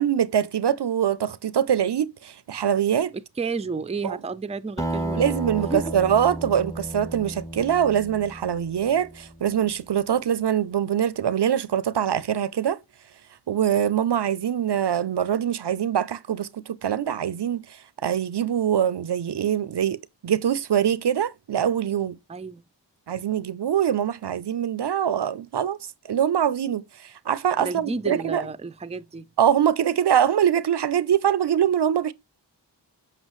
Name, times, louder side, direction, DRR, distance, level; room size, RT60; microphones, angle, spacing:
voice 1, 0.0-3.1 4.0-4.2 5.2-12.8 13.5-22.2 23.1-25.8 26.1-28.4 29.4-32.1, right 9 dB, 65° right, 0.5 m, -23 dB
voice 2, 3.1-5.3 5.7-5.9 22.3-22.6 27.6-29.3, right 4 dB, 15° right, 0.4 m, -31 dB
Acoustic guitar, 4.8-9.6, right 1 dB, 10° left, 1.1 m, -33 dB
7.4 x 5.5 x 3.1 m
wide cardioid pair, 40°, 43 cm